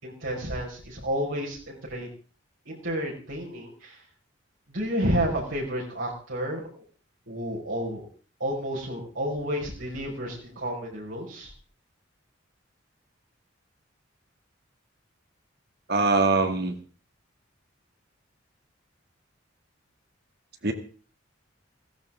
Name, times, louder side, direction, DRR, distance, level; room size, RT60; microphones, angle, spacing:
voice 1, 0.0-2.1 2.7-4.0 4.7-6.8 7.3-8.0 8.4-11.5, equal, 80° right, -5 dB, 5.4 m, -31 dB
voice 2, 15.9-16.7 20.6-20.7, right 3 dB, 55° right, 6 dB, 2.2 m, -22 dB
16.5 x 16.0 x 3.8 m, 0.39 s
head